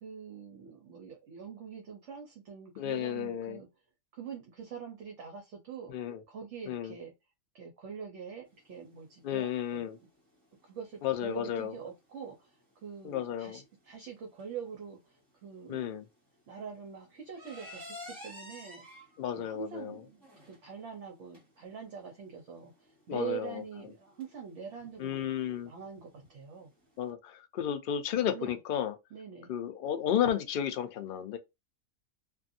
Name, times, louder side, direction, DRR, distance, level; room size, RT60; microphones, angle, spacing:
voice 1, 0.0-3.7 4.1-5.9 6.3-7.1 7.5-9.8 10.6-12.5 12.8-15.9 16.5-18.8 19.4-25.3 25.6-26.7 28.3-28.5 29.1-29.5, right 7 dB, 60° right, 0.9 m, -44 dB
voice 2, 2.8-3.6 5.9-6.2 6.7-7.0 9.2-10.0 11.0-11.8 13.0-13.6 15.7-16.1 19.2-20.0 23.1-23.6 25.0-25.7 27.0-29.0 29.5-31.4, left 9 dB, 70° left, 0.5 m, -33 dB
sound 1, 8.4-27.1, left 1 dB, 20° right, 1.6 m, -54 dB
2.6 x 2.5 x 2.6 m
omnidirectional pair, 1.5 m